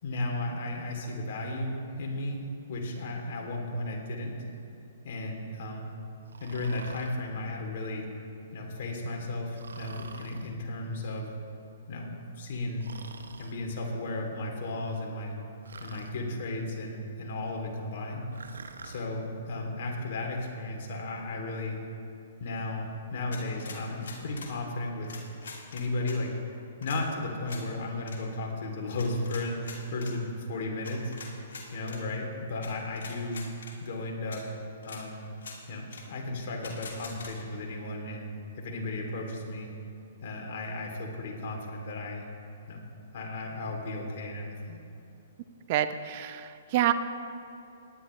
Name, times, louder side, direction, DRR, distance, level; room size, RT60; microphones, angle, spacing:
voice 1, 0.0-4.4 5.0-6.0 6.4-8.1 8.5-11.3 11.9-12.9 13.4-15.3 15.8-18.3 18.8-21.8 22.4-25.2 25.7-26.3 26.8-31.1 31.7-33.4 33.8-34.5 34.8-35.3 35.7-38.3 38.6-39.7 40.2-42.2 42.7-42.8 43.1-44.8, left 2 dB, 55° left, 0 dB, 2.8 m, -34 dB
Breathing, 6.3-7.2 9.5-10.5 12.8-13.5 15.6-16.2 18.3-19.1, right 4 dB, 85° right, 0.8 m, -46 dB
sound 1, 23.3-24.5 25.0-26.2 26.8-27.0 27.5-27.6 28.0-28.2 29.0-30.1 30.8-32.0 32.6-32.7 33.0-33.7 34.3-34.4 34.8-35.0 35.4-35.6 35.9-36.0 36.6-37.3, left 4 dB, 75° left, 2.5 m, -44 dB
voice 2, 45.7-46.9, right 12 dB, 45° right, 11 dB, 0.6 m, -27 dB
18.0 x 11.0 x 3.2 m, 2.7 s
hypercardioid pair, 135°, 0 cm